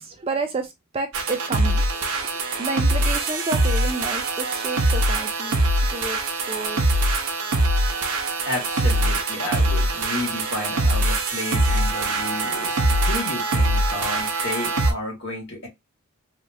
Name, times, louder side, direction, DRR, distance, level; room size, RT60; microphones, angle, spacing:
voice 1, 0.0-5.6 5.9-6.2 6.5-7.4, right 3 dB, 25° right, 0.3 m, -31 dB
sound 1, 1.1-14.9, right 1 dB, 75° right, 0.6 m, -23 dB
voice 2, 8.4-15.7, left 1 dB, 50° left, 1.6 m, -32 dB
3.1 x 2.4 x 2.7 m
head